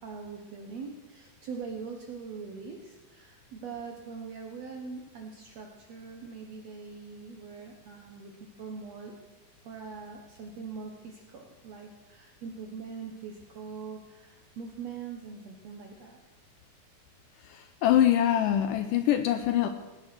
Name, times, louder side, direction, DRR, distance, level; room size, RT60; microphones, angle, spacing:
voice 1, 0.0-9.1 9.6-16.2, right 5 dB, 70° right, 2 dB, 1.6 m, -42 dB
voice 2, 17.5-19.7, left 11 dB, 80° left, 9 dB, 2.0 m, -24 dB
17.0 x 9.9 x 6.1 m, 1.2 s
omnidirectional pair, 4.4 m